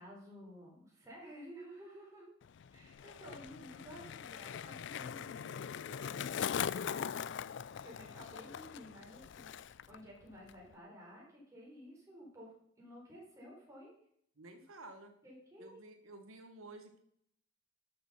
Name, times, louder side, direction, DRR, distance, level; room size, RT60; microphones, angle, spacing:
voice 1, 0.0-2.3 2.7-7.1 7.5-13.9 15.2-15.8, equal, 15° right, -4 dB, 4.5 m, -53 dB
Skateboard, 2.4-10.0 10.2-10.7, left 8 dB, 55° left, 0.3 m, -41 dB
voice 2, 14.4-15.1 15.6-17.0, right 2 dB, 85° right, 6 dB, 1.3 m, -52 dB
12.5 x 6.8 x 5.7 m, 0.67 s
head